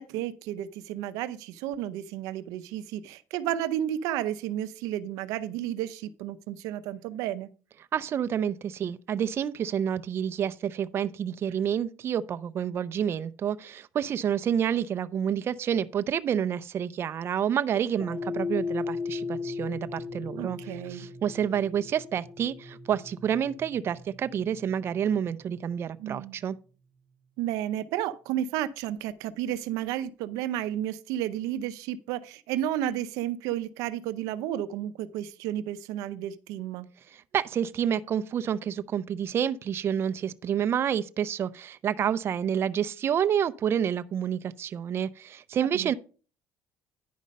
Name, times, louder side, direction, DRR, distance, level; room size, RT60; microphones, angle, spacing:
voice 1, 0.0-7.5 20.4-21.1 26.0-26.4 27.4-36.9 45.7-45.9, right 12 dB, 85° right, 0.6 m, -32 dB
voice 2, 7.9-26.6 37.1-45.9, right 9 dB, 45° right, 0.6 m, -29 dB
sound 1, 18.0-26.4, left 4 dB, 35° left, 2.4 m, -37 dB
10.5 x 5.3 x 5.2 m
cardioid pair, 105°, 6 cm